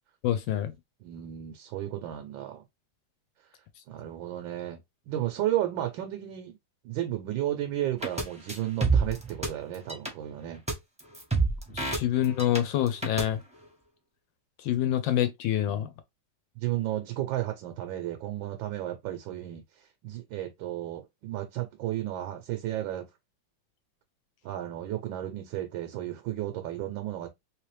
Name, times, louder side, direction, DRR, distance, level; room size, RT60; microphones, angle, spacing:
voice 1, 0.2-0.7 11.7-13.4 14.6-15.9, left 11 dB, 80° left, 1.4 m, -26 dB
voice 2, 1.0-2.6 3.9-4.8 5.1-6.6 6.8-10.6 11.8-12.0 15.7-15.9 16.6-19.6 20.0-23.0 24.4-27.3, right 13 dB, 80° right, 1.4 m, -33 dB
sound 1, 8.0-8.2 8.5-9.5 9.7-10.1 10.7-10.8 11.0-12.6 12.9-13.2, right 4 dB, 5° right, 0.8 m, -27 dB
3.2 x 3.2 x 3.2 m
omnidirectional pair, 2.1 m